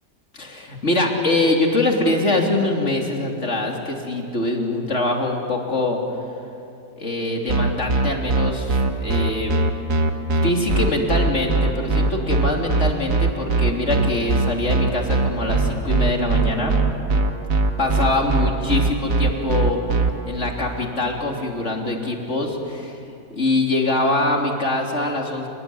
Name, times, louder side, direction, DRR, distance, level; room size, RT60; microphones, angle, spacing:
voice 1, 0.3-6.0 7.0-9.6 10.4-17.0 17.8-19.8 20.3-23.0 23.3-25.5, left 2 dB, 40° left, 1 dB, 3.5 m, -23 dB
sound 1, 7.5-20.1, right 3 dB, 50° right, 1.8 m, -20 dB
29.5 x 20.0 x 9.7 m, 2.8 s
omnidirectional pair, 1.9 m